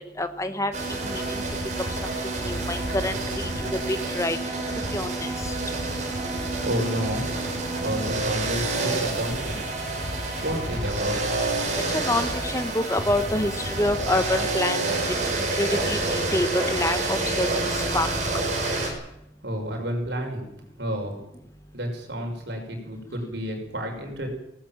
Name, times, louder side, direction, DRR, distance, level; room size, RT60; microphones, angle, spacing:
voice 1, 0.2-1.4 1.8-4.6 4.9-5.6 11.7-18.1, left 1 dB, 15° left, 9 dB, 1.4 m, -28 dB
sound 1, 0.7-18.9, right 2 dB, 40° right, 5.5 m, -28 dB
voice 2, 6.6-7.3 7.8-9.6 10.4-11.2 19.4-20.5 20.8-21.2 21.7-24.3, equal, 65° right, 3 dB, 5.6 m, -30 dB
19.5 x 18.0 x 7.4 m, 0.80 s
head